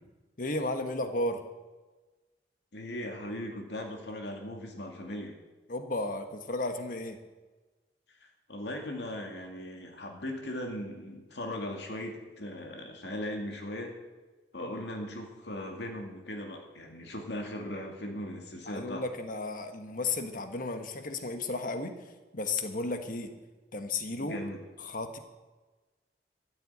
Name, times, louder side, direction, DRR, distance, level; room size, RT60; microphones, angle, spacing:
voice 1, 0.4-1.4 5.7-7.2 14.6-14.8 18.7-21.9 22.3-23.3 23.7-24.4 24.8-25.2, left 2 dB, 50° left, 7 dB, 1.4 m, -34 dB
voice 2, 2.7-5.3 8.2-13.9 14.5-19.0 24.2-24.6, left 1 dB, 75° left, 2 dB, 2.2 m, -38 dB
13.5 x 7.8 x 8.7 m, 1.2 s
head